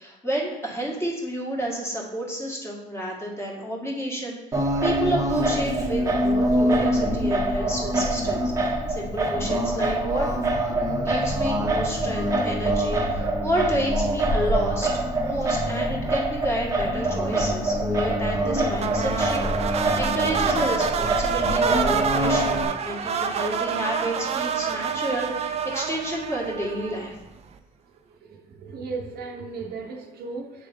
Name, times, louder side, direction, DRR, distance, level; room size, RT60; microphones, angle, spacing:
voice 1, 0.0-10.3 11.0-14.9 15.2-27.2, right 1 dB, 15° left, -3 dB, 1.7 m, -30 dB
Singing, 4.5-22.6, right 1 dB, 20° right, 0.9 m, -24 dB
sound 1, 18.8-27.2, right 7 dB, 40° right, 0.5 m, -28 dB
voice 2, 27.8-30.7, right 4 dB, 70° right, 2 dB, 0.8 m, -36 dB
8.1 x 3.4 x 3.5 m, 0.92 s
cardioid pair, 110°, 17 cm